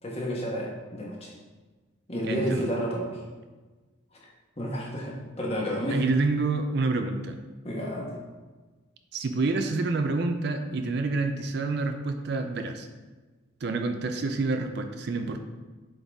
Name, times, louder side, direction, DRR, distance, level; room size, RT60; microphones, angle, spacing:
voice 1, 0.0-1.3 2.1-3.2 4.1-4.2 4.6-6.0 7.6-8.2, equal, 30° left, -3 dB, 1.3 m, -30 dB
voice 2, 2.2-2.7 5.9-7.4 9.1-12.9 13.6-15.4, right 3 dB, 55° right, 7 dB, 0.4 m, -28 dB
7.8 x 3.9 x 3.6 m, 1.3 s
head